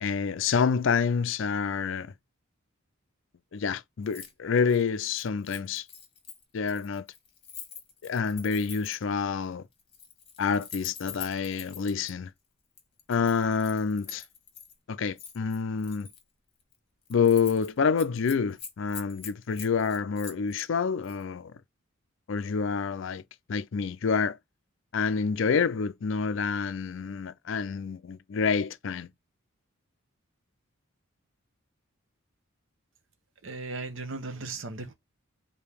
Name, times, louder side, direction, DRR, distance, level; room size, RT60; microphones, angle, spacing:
voice 1, 0.0-2.1 3.5-5.9 6.5-7.1 8.0-9.7 10.4-12.3 13.1-14.2 14.9-16.1 17.1-21.5 22.3-23.2 23.5-24.4 24.9-29.1, left 5 dB, 60° left, 0.4 m, -28 dB
Keys jangling, 4.0-4.3 4.6-9.1 9.8-12.1 12.8-14.7 15.2-16.2 16.6-16.8 17.1-17.7 18.0-20.7 21.0-21.2, left 7 dB, 25° left, 1.3 m, -45 dB
voice 2, 33.4-34.9, right 3 dB, 60° right, 0.8 m, -37 dB
5.0 x 2.7 x 3.3 m
head